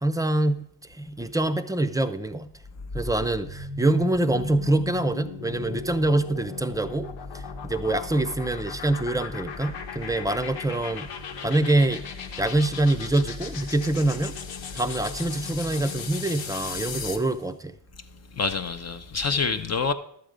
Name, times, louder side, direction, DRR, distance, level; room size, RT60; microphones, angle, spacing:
voice 1, 0.0-2.5 2.9-11.1 11.4-12.0 12.4-14.4 14.7-17.7, right 2 dB, 10° right, 0.6 m, -25 dB
sound 1, 2.5-17.3, left 4 dB, 85° left, 1.3 m, -36 dB
voice 2, 18.3-19.9, left 5 dB, 35° left, 0.7 m, -26 dB
11.5 x 7.9 x 5.0 m
cardioid pair, 100°, 43 cm